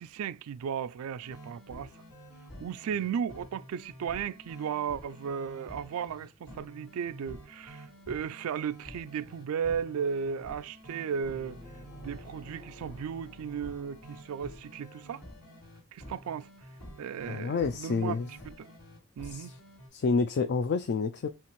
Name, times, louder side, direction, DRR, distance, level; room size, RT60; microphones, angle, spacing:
voice 1, 0.0-1.9 2.6-11.6 12.0-15.2 15.9-16.5 17.0-18.7 19.2-19.5, right 7 dB, 70° right, 0.3 m, -35 dB
sound 1, 1.2-19.9, equal, 70° left, 2.5 m, -49 dB
sound 2, 11.2-14.9, equal, 90° left, 1.2 m, -51 dB
voice 2, 17.3-18.3 19.2-19.6 19.9-21.3, left 4 dB, 50° left, 0.3 m, -29 dB
5.7 x 2.5 x 3.1 m
head